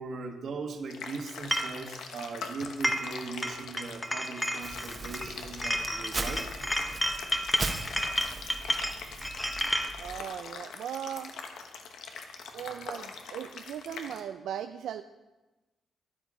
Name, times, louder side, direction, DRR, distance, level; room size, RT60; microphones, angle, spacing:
voice 1, 0.0-6.4 9.4-9.5, right 4 dB, 60° right, 5 dB, 1.5 m, -39 dB
sound 1, 0.9-14.2, left 5 dB, 90° left, 1.2 m, -43 dB
sound 2, 1.5-1.7 2.6-3.2 3.4-5.3 5.6-9.9, equal, 10° left, 0.9 m, -31 dB
Crumpling crinkling, 4.6-10.2, right 3 dB, 25° right, 1.1 m, -39 dB
voice 2, 10.0-11.3 12.5-15.0, right 9 dB, 90° right, 8 dB, 0.4 m, -38 dB
12.5 x 10.5 x 4.9 m, 1.1 s
cardioid pair, 120°, 0 cm